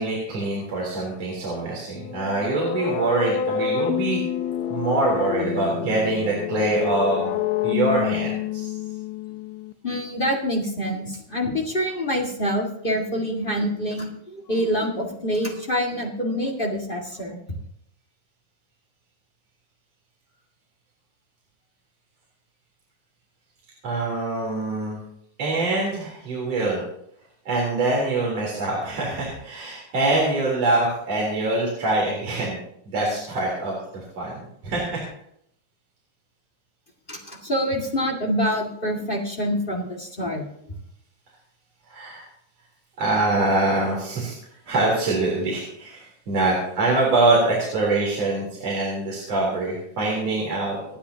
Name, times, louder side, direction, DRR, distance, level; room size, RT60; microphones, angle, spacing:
voice 1, 0.0-4.2 4.7-8.8 23.8-25.0 25.4-26.8 27.4-32.6 32.8-35.0 41.9-42.2 43.0-44.4 44.7-51.0, right 2 dB, 40° right, -3 dB, 4.5 m, -24 dB
sound 1, 2.0-9.7, left 9 dB, 75° left, 2.4 m, -28 dB
voice 2, 9.8-17.4 37.1-40.4, equal, 25° left, 0 dB, 1.1 m, -26 dB
27.5 x 10.0 x 2.9 m, 0.71 s
omnidirectional pair, 4.6 m